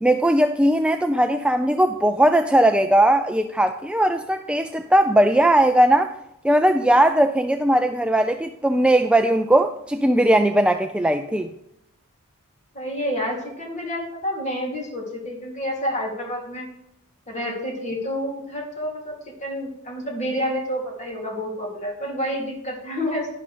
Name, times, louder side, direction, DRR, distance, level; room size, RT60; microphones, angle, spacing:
voice 1, 0.0-6.1 6.4-11.5, right 1 dB, 5° right, 7 dB, 0.3 m, -19 dB
voice 2, 12.7-16.7 17.3-23.3, equal, 35° left, -1 dB, 2.8 m, -29 dB
11.0 x 11.0 x 3.4 m, 0.78 s
head